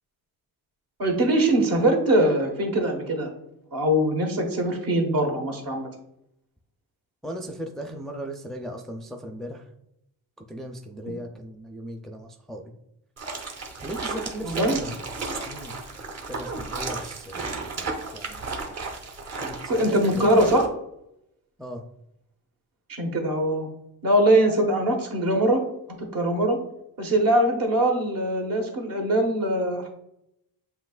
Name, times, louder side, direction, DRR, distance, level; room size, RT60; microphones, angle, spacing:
voice 1, 1.0-3.3 3.7-5.9 14.4-14.8 19.7-20.7 22.9-23.7 24.0-25.6 26.0-26.6 27.0-30.0, right 1 dB, 55° right, 2 dB, 1.4 m, -22 dB
voice 2, 7.2-9.6 10.5-12.7 13.8-15.0 15.4-15.9 16.3-18.4 19.4-20.3 21.6-21.8, equal, ahead, 2 dB, 0.4 m, -37 dB
sound 1, 13.2-20.7, right 3 dB, 40° right, 1.0 m, -34 dB
7.6 x 2.9 x 2.4 m, 0.81 s
cardioid pair, 100°, 40 cm